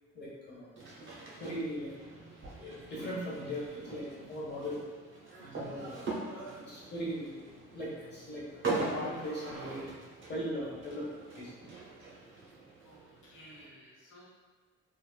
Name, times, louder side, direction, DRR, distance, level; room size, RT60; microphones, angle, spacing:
voice 1, 0.1-0.7 1.4-1.9 2.6-4.8 5.4-7.4 7.7-9.9 10.3-11.1 11.3-11.5, equal, 35° left, -6 dB, 1.2 m, -39 dB
sound 1, 0.8-13.7, right 3 dB, 40° right, 0.8 m, -42 dB
voice 2, 12.8-14.2, equal, 85° left, -6 dB, 1.1 m, -55 dB
3.3 x 2.5 x 2.2 m, 1.4 s
cardioid pair, 90°, 30 cm